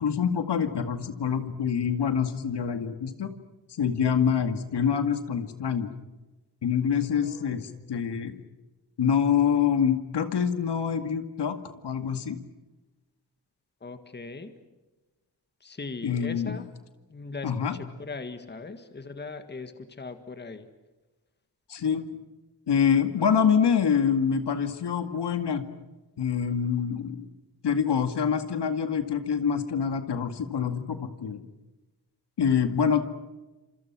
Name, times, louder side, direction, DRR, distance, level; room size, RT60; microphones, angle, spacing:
voice 1, 0.0-3.3 3.7-5.9 6.6-8.4 9.0-11.6 11.8-12.4 16.0-16.6 17.4-17.8 21.7-22.0 22.7-25.6 26.2-27.3 27.6-31.4 32.4-33.0, left 7 dB, 70° left, 8 dB, 2.2 m, -26 dB
voice 2, 7.2-7.8 13.8-14.5 15.6-16.6 17.1-17.7 18.0-20.7, left 3 dB, 25° left, 8 dB, 1.8 m, -39 dB
29.5 x 27.0 x 6.2 m, 1.1 s
wide cardioid pair, 160°, 42 cm